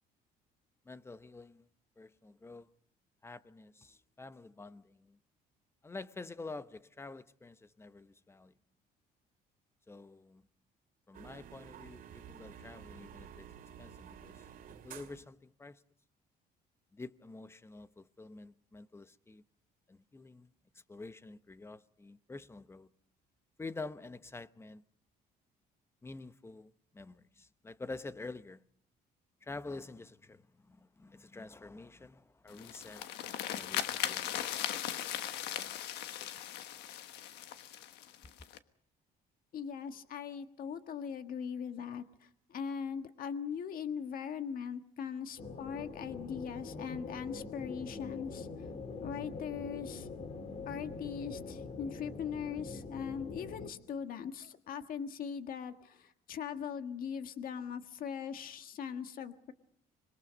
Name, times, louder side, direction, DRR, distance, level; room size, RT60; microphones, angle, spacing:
voice 1, 0.9-1.7 2.0-2.7 3.2-5.2 5.8-8.5 9.9-10.4 11.1-13.5 13.8-15.8 16.9-19.4 19.9-20.5 20.9-22.9 23.6-24.8 26.0-28.6 29.4-33.1 33.5-34.4 35.5-35.8 38.2-38.3, left 3 dB, 15° left, 0.9 m, -48 dB
sound 1, 11.1-15.3, right 8 dB, 55° right, 2.3 m, -51 dB
sound 2, 32.5-38.6, left 11 dB, 85° left, 1.3 m, -38 dB
voice 2, 39.5-48.7 49.0-50.1 50.7-59.5, left 7 dB, 60° left, 1.6 m, -40 dB
sound 3, 45.4-53.7, left 4 dB, 40° left, 2.4 m, -44 dB
26.0 x 22.0 x 5.2 m
cardioid pair, 110°, 17 cm